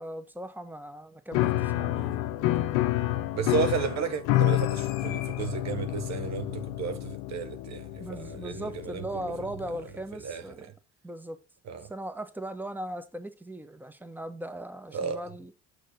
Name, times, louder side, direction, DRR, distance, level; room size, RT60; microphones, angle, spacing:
voice 1, 0.0-2.8 8.0-10.7 11.0-11.4 11.9-15.5, right 1 dB, 5° right, 1.2 m, -39 dB
Piano, 1.3-9.8, left 15 dB, 75° left, 0.7 m, -29 dB
voice 2, 3.3-9.0 10.2-10.4 11.7-11.9 14.9-15.2, right 6 dB, 55° right, 1.0 m, -33 dB
6.9 x 6.4 x 3.8 m
hypercardioid pair, 55°, 33 cm